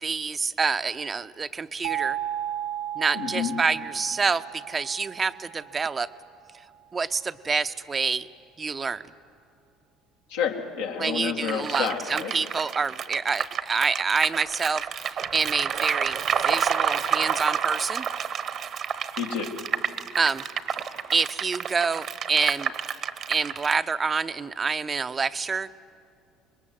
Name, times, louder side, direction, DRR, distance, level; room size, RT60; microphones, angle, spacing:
voice 1, 0.0-2.2 3.0-6.1 6.9-8.3 8.6-9.1 11.0-18.1 20.2-20.4 21.1-22.7 23.3-25.7, right 5 dB, 30° right, 12 dB, 0.7 m, -27 dB
sound 1, 1.8-6.5, right 11 dB, 90° right, 1.2 m, -35 dB
voice 2, 3.1-3.6 10.3-12.3 19.2-19.5, left 7 dB, 85° left, 0 dB, 2.2 m, -29 dB
sound 2, 11.5-23.8, right 8 dB, 55° right, 1.1 m, -29 dB
25.5 x 21.5 x 7.8 m, 2.5 s
hypercardioid pair, 65°, 0 cm